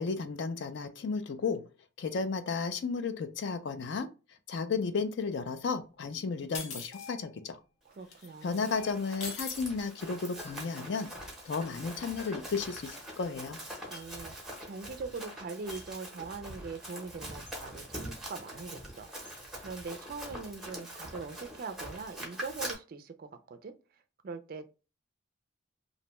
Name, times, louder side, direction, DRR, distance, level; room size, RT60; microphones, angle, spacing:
voice 1, 0.0-1.7 2.0-4.1 4.5-7.6 8.4-11.1 11.4-13.6, left 4 dB, 60° left, 0.4 m, -33 dB
sound 1, 6.5-7.1 8.1-8.3 9.2-9.6, left 4 dB, 75° left, 0.7 m, -39 dB
sound 2, 6.9-7.6 8.7-9.4 10.4-10.8 12.2-12.6 13.9-14.2 15.7-16.0 17.5-17.6 19.2-19.4, left 5 dB, 40° left, 0.8 m, -52 dB
voice 2, 7.9-8.6 13.9-14.3 14.6-19.1 19.6-23.7 24.2-24.7, right 4 dB, 45° right, 0.3 m, -42 dB
Run, 8.2-22.7, equal, ahead, 0.6 m, -44 dB
2.6 x 2.1 x 2.9 m
head